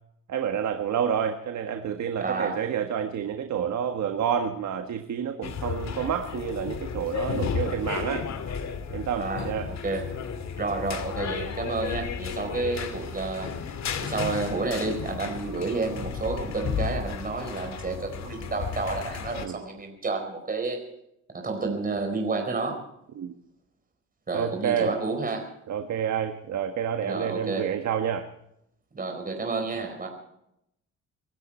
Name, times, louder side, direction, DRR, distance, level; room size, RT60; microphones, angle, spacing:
voice 1, 0.3-8.3 8.9-9.7 15.4-15.6 19.4-19.6 23.2-23.3 24.3-24.9 25.7-28.2, right 8 dB, 65° right, 6 dB, 1.6 m, -29 dB
voice 2, 2.2-2.6 9.2-10.1 10.6-13.5 14.0-20.8 21.3-22.8 24.3-25.5 27.0-27.7 28.9-30.1, right 3 dB, 30° right, 3 dB, 4.5 m, -30 dB
sound 1, 5.4-19.5, left 7 dB, 65° left, 2.3 m, -33 dB
24.0 x 13.5 x 4.4 m, 0.78 s
cardioid pair, 90°, 30 cm